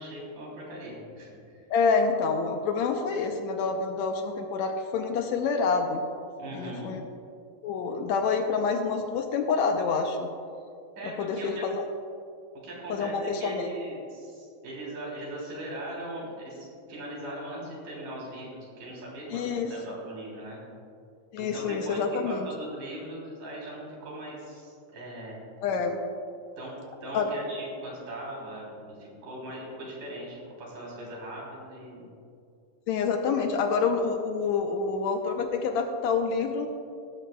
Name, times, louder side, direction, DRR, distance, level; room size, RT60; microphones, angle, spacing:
voice 1, 0.0-1.6 6.4-7.0 11.0-11.7 12.6-13.1 13.4-20.6 21.4-22.0 22.3-25.4 26.6-26.7 27.0-32.1, right 1 dB, 85° right, -5 dB, 4.9 m, -39 dB
voice 2, 1.7-6.0 6.5-7.0 7.6-10.3 11.2-11.8 12.9-13.7 19.3-19.8 21.3-22.5 25.6-26.0 27.1-27.3 32.9-36.7, left 5 dB, 75° left, 5 dB, 1.8 m, -27 dB
17.0 x 13.0 x 2.3 m, 2.5 s
omnidirectional pair, 3.6 m